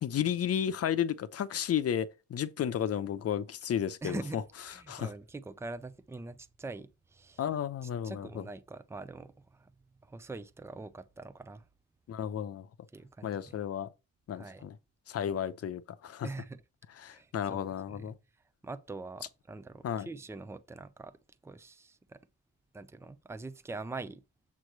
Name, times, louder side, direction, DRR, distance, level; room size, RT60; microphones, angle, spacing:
voice 1, 0.0-4.4 4.9-5.1 7.4-8.4 12.1-12.7 13.2-13.9 14.3-14.8 15.1-16.3 17.0-18.2 19.8-20.1, left 9 dB, 50° left, 0.8 m, -33 dB
voice 2, 4.0-4.4 4.7-7.4 7.8-9.7 10.0-11.6 12.9-13.5 14.3-14.7 16.2-16.6 17.1-17.6 17.9-18.2 18.6-21.1 21.4-22.2 22.7-24.2, right 3 dB, 10° right, 0.6 m, -43 dB
7.6 x 3.2 x 6.0 m
cardioid pair, 90°, 30 cm